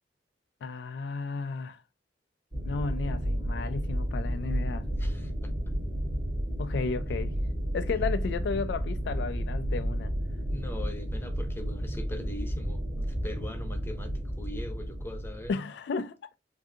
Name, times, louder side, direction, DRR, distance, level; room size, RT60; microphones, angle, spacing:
voice 1, 0.6-1.8 2.6-4.9 6.6-7.3 7.7-10.1 15.5-16.3, left 4 dB, 75° left, 0.3 m, -33 dB
sound 1, 2.5-15.5, equal, 35° right, 1.6 m, -32 dB
voice 2, 5.0-5.5 10.5-15.5, left 1 dB, 15° left, 0.8 m, -41 dB
4.9 x 2.6 x 2.7 m
head